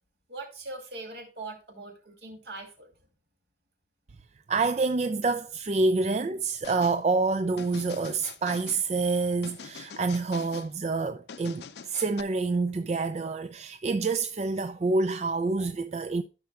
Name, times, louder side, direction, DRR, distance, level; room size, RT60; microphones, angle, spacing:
voice 1, 0.3-2.9, right 2 dB, 70° right, 2.5 m, -41 dB
voice 2, 4.5-16.2, right 3 dB, 40° right, 0.3 m, -27 dB
sound 1, 6.6-7.0 7.6-8.8 9.4-10.7 11.3-12.2, left 6 dB, 70° left, 0.5 m, -44 dB
13.5 x 5.7 x 2.3 m
head